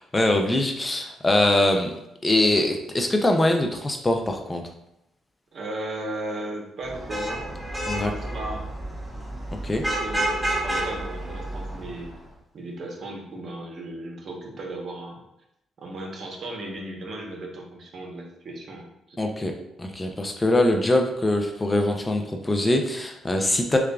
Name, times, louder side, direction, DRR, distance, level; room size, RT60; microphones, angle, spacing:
voice 1, 0.1-1.9 2.2-4.6 7.9-8.1 9.6-9.8 19.2-19.5 19.8-23.8, left 1 dB, 20° left, 3 dB, 0.5 m, -22 dB
voice 2, 5.5-7.6 8.0-8.6 9.8-12.1 12.5-15.2 15.8-19.2, right 1 dB, 55° right, 0 dB, 1.0 m, -36 dB
Vehicle horn car horn honking / Traffic noise roadway noise, 6.9-12.1, right 1 dB, 15° right, 0.9 m, -30 dB
6.4 x 2.4 x 2.3 m, 0.83 s
cardioid pair, 90°, 0 cm